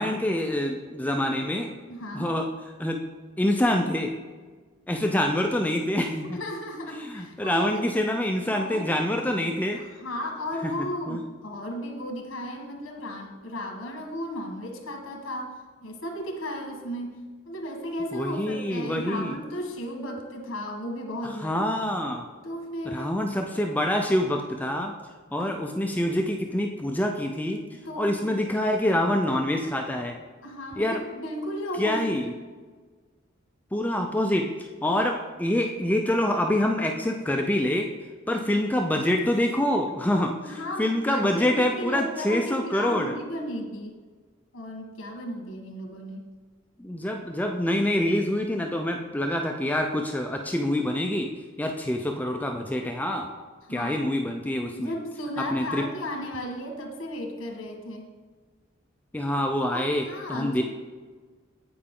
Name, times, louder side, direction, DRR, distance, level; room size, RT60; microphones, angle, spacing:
voice 1, 0.0-1.7 2.1-2.5 2.8-3.1 3.4-4.1 4.9-6.4 7.0-9.8 11.1-11.2 18.1-19.3 21.4-22.2 22.9-24.9 25.3-27.6 28.0-30.2 30.8-31.0 31.8-32.3 33.7-34.5 34.8-37.9 38.3-40.3 40.8-43.1 46.8-51.3 51.6-53.3 53.7-54.9 55.5-55.8 59.1-60.0 60.3-60.6, left 1 dB, 10° left, 3 dB, 0.3 m, -26 dB
voice 2, 1.9-2.3 6.2-7.9 8.5-9.1 9.7-21.6 22.4-23.2 25.4-25.5 27.8-28.4 30.4-32.2 40.4-43.9 44.5-46.3 53.6-54.0 54.7-58.1 59.7-60.6, equal, 85° left, 2 dB, 1.3 m, -35 dB
8.6 x 4.7 x 3.6 m, 1.4 s
head